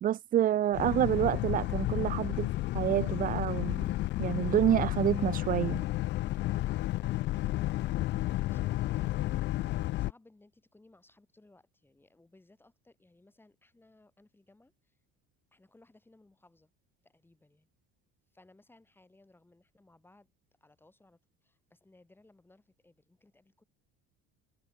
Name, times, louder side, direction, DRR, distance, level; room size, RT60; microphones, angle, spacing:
voice 1, 0.0-3.8 4.2-5.8, right 11 dB, 30° right, 0.6 m, -28 dB
Boat Water vehicle, 0.7-10.1, left 16 dB, 40° left, 0.4 m, -32 dB
voice 2, 8.4-15.0 15.5-16.7 17.0-17.7 18.3-20.3 20.6-23.6, left 2 dB, 5° left, 7.0 m, -63 dB
cardioid pair, 160°, 29 cm